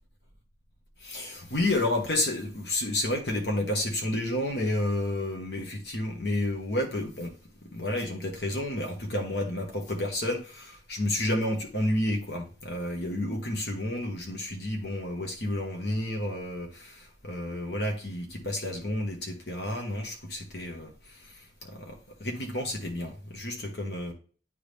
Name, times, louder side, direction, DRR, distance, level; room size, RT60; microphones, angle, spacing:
voice 1, 1.0-7.3 7.6-24.1, left 1 dB, 60° left, 1.3 m, -31 dB
9.6 x 3.7 x 3.4 m
head